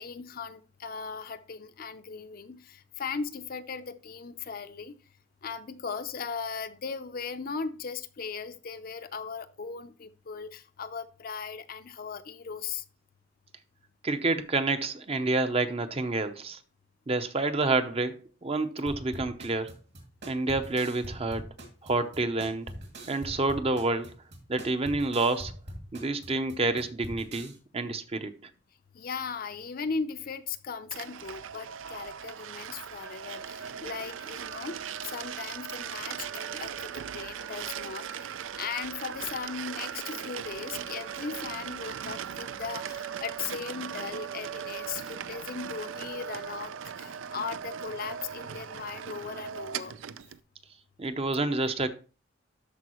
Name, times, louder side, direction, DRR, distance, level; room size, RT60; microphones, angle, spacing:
voice 1, 0.0-5.0 5.4-12.8 28.9-49.9, left 5 dB, 50° left, 0.6 m, -38 dB
voice 2, 14.0-16.6 17.1-19.7 20.3-21.4 21.8-22.7 23.0-24.1 24.5-25.5 25.9-28.3 51.0-51.9, right 3 dB, 30° right, 0.7 m, -28 dB
sound 1, 18.9-27.5, equal, 60° right, 2.5 m, -43 dB
sound 2, 30.9-50.4, right 8 dB, 85° right, 0.4 m, -39 dB
12.5 x 4.7 x 3.0 m
head